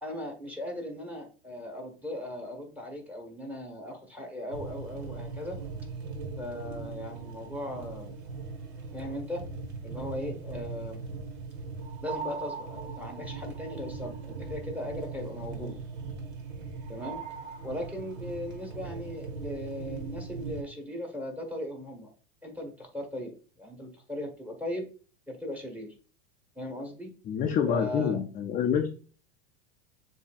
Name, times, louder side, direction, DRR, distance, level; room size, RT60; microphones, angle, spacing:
voice 1, 0.0-5.6 6.4-8.2 8.9-9.5 9.8-11.0 12.0-15.8 16.9-17.2 17.6-22.1 22.4-24.9 25.3-25.9 26.5-27.1 27.6-28.2, left 1 dB, 5° right, 2 dB, 1.3 m, -38 dB
sound 1, 4.5-20.6, right 4 dB, 70° right, 1.6 m, -39 dB
voice 2, 27.3-28.9, left 8 dB, 25° left, 2 dB, 0.5 m, -27 dB
6.9 x 2.8 x 2.4 m, 0.38 s
supercardioid pair, 115°, 32 cm